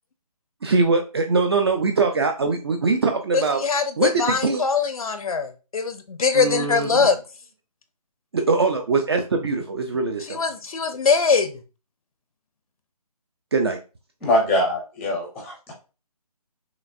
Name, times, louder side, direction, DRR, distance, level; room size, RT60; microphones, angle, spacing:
voice 1, 0.6-3.6 4.0-4.6 6.3-7.1 8.3-10.4 13.5-13.8, right 4 dB, 40° right, 4 dB, 0.5 m, -22 dB
voice 2, 3.3-7.2 10.3-11.5, left 5 dB, 60° left, 9 dB, 0.6 m, -22 dB
voice 3, 14.2-15.7, left 1 dB, ahead, -2 dB, 0.6 m, -23 dB
5.8 x 2.5 x 2.6 m, 0.32 s
figure-of-eight pair, 160°, 20 cm